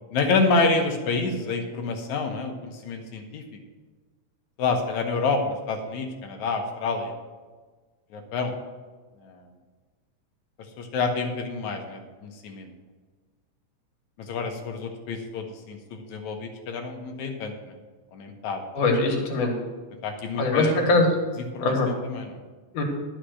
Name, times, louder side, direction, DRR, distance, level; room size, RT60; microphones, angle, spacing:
voice 1, 0.1-3.4 4.6-7.1 8.1-8.5 9.2-9.4 10.8-12.7 14.2-17.7 18.1-18.7 20.0-20.9 21.5-22.4, left 3 dB, 75° left, 3 dB, 2.5 m, -28 dB
voice 2, 18.7-19.5 20.4-21.1 21.6-21.9 22.7-22.8, left 2 dB, 90° left, 1 dB, 3.1 m, -22 dB
12.0 x 5.8 x 6.4 m, 1.4 s
omnidirectional pair, 3.4 m